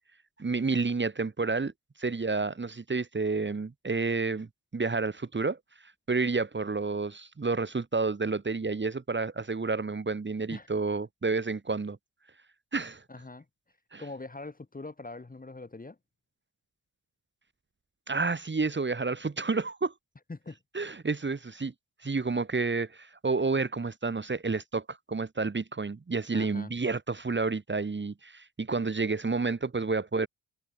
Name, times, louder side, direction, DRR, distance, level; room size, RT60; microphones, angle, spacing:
voice 1, 0.4-1.7 2.0-4.5 4.7-5.6 6.1-12.0 12.7-13.0 13.9-14.0 18.1-19.9 20.7-21.7 22.0-30.3, right 4 dB, 25° right, 1.7 m, -30 dB
voice 2, 13.1-13.4 14.0-16.0 20.3-20.6 26.3-26.7, left 3 dB, 20° left, 1.7 m, -42 dB
cardioid pair, 70°, 44 cm